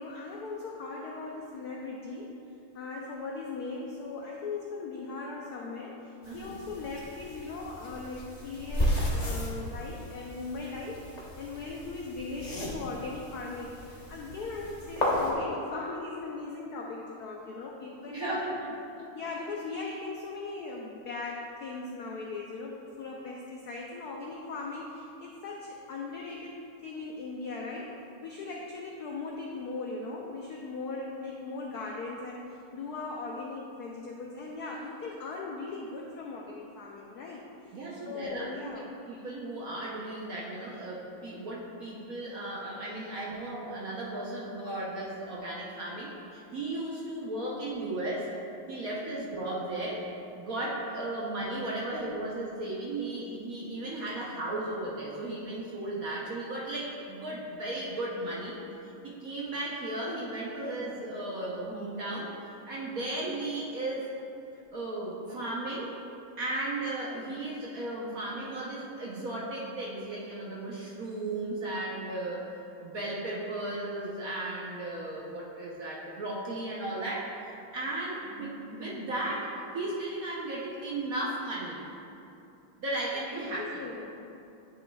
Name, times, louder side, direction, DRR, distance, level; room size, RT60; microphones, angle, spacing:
voice 1, 0.0-2.4 2.7-18.5 19.1-27.9 28.2-37.8 38.1-38.9 46.0-46.1 48.0-48.1 49.0-49.1 51.1-51.2 54.7-54.8 83.3-84.3, left 3 dB, 85° left, -1 dB, 0.8 m, -39 dB
sound 1, 6.2-15.3, left 1 dB, 40° left, 0.6 m, -34 dB
voice 2, 6.3-6.6 18.1-18.7 37.7-38.7 39.1-48.3 48.7-50.1 50.4-58.6 59.0-62.3 62.6-64.2 64.7-66.0 66.4-81.8 82.8-83.8, right 2 dB, 60° right, -5 dB, 1.0 m, -35 dB
10.0 x 6.3 x 2.3 m, 2.7 s
omnidirectional pair, 2.3 m